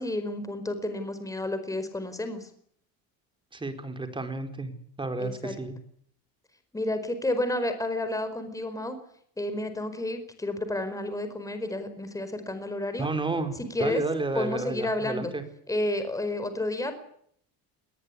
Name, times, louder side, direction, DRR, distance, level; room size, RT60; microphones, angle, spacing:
voice 1, 0.0-2.5 5.2-5.5 6.7-9.0 9.4-13.1 13.6-14.0 14.3-15.3 15.7-16.9, left 1 dB, 10° left, 9 dB, 4.8 m, -31 dB
voice 2, 3.5-5.8 13.0-15.4, right 3 dB, 15° right, 7 dB, 4.6 m, -32 dB
21.5 x 19.5 x 9.9 m, 0.66 s
cardioid pair, 140°, 37 cm